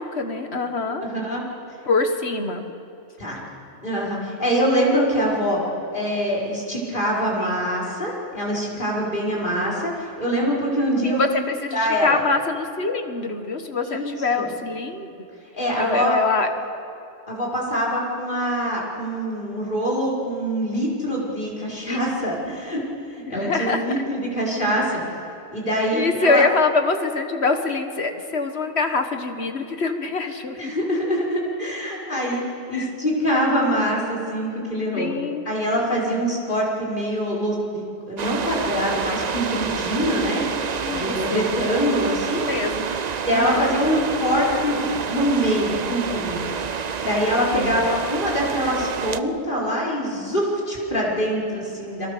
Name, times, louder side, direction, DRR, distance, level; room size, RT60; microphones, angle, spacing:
voice 1, 0.0-1.0 1.9-2.6 7.4-7.6 11.0-15.2 15.8-16.5 21.9-22.0 23.3-23.8 25.9-30.7 32.7-32.9 35.0-35.5 40.8-41.5 42.4-42.9 43.3-43.8 47.5-47.8, left 3 dB, 70° left, 6 dB, 1.9 m, -24 dB
voice 2, 1.0-1.4 3.2-3.4 3.8-5.6 5.9-11.4 11.7-12.2 13.8-14.5 15.5-16.1 17.3-22.8 23.1-25.0 25.5-26.4 30.6-35.1 35.5-40.5 40.9-42.5 43.3-46.4 47.0-52.1, equal, 50° left, -4 dB, 5.7 m, -24 dB
sound 1, 38.2-49.2, right 6 dB, 45° right, 0.8 m, -28 dB
30.0 x 23.0 x 6.8 m, 2.6 s
omnidirectional pair, 1.1 m